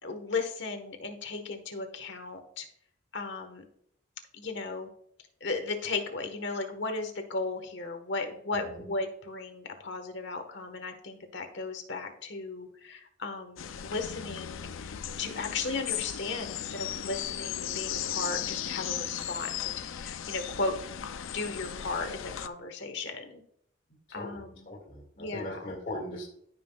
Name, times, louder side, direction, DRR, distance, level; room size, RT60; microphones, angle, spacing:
voice 1, 0.0-2.7 3.1-3.6 4.3-4.9 5.4-20.7 21.3-23.4 24.1-24.7 25.2-25.7, left 3 dB, 60° left, 6 dB, 1.4 m, -36 dB
voice 2, 8.5-8.9 24.1-26.3, left 1 dB, 40° left, -4 dB, 2.2 m, -40 dB
sound 1, 13.6-22.5, left 10 dB, 80° left, 0.5 m, -36 dB
15.5 x 5.8 x 2.4 m, 0.68 s
head